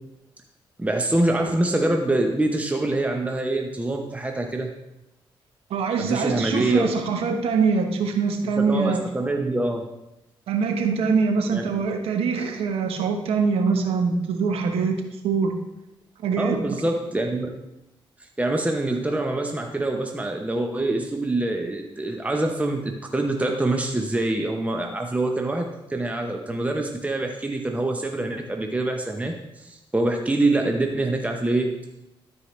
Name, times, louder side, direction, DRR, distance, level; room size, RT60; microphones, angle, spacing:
voice 1, 0.8-4.7 6.0-6.9 8.6-9.8 11.5-11.6 16.4-17.5 18.2-31.8, right 2 dB, 15° right, 3 dB, 0.9 m, -25 dB
voice 2, 5.7-9.0 10.5-14.9 15.2-15.5 16.2-16.6, right 5 dB, 80° right, 4 dB, 1.1 m, -23 dB
13.0 x 4.7 x 3.2 m, 0.92 s
cardioid pair, 65°, 10 cm